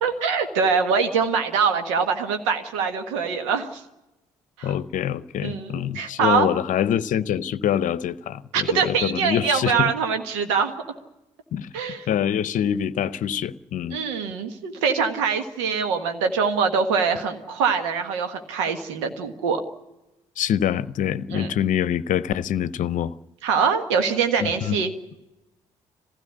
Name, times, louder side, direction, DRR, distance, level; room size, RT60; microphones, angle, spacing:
voice 1, 0.0-3.8 4.6-4.7 5.4-6.5 8.5-10.7 11.7-12.1 13.9-19.6 21.3-21.5 23.4-24.9, right 6 dB, 85° right, 1.5 m, -23 dB
voice 2, 4.6-9.9 11.5-11.7 12.1-14.0 20.4-23.1 24.4-24.8, left 9 dB, 60° left, 0.8 m, -25 dB
22.0 x 16.0 x 9.7 m
hypercardioid pair, 45°, 15 cm